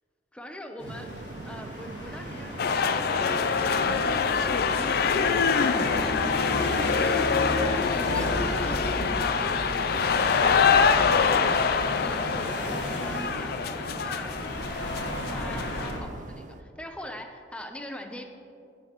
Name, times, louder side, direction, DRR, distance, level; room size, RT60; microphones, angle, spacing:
voice 1, 0.3-1.1 1.4-6.2 6.7-14.4 15.2-18.2, equal, 5° left, 5 dB, 0.6 m, -42 dB
sound 1, 0.8-16.0, left 1 dB, 90° left, 1.5 m, -34 dB
sound 2, 0.8-16.6, right 3 dB, 45° right, 0.4 m, -43 dB
sound 3, 2.6-15.9, left 6 dB, 60° left, 0.4 m, -25 dB
17.5 x 5.9 x 3.0 m, 2.5 s
head